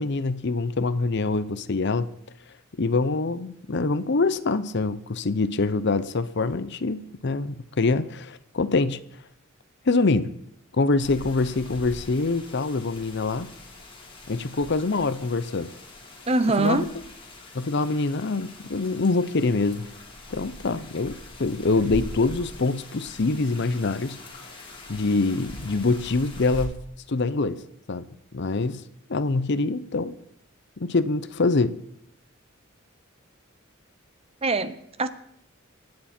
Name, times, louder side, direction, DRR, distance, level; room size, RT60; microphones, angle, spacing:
voice 1, 0.0-2.1 2.8-9.0 9.9-10.3 10.7-13.5 14.3-15.7 16.6-16.9 17.5-19.9 20.3-24.2 24.9-26.8 27.1-27.6 27.9-28.1 28.3-28.8 29.1-30.2 30.8-31.8, left 3 dB, 55° left, 0.7 m, -25 dB
sound 1, 11.0-26.7, left 1 dB, 25° left, 2.3 m, -43 dB
voice 2, 16.3-16.9 34.4-35.1, right 3 dB, 30° right, 0.7 m, -23 dB
24.5 x 9.6 x 4.4 m
head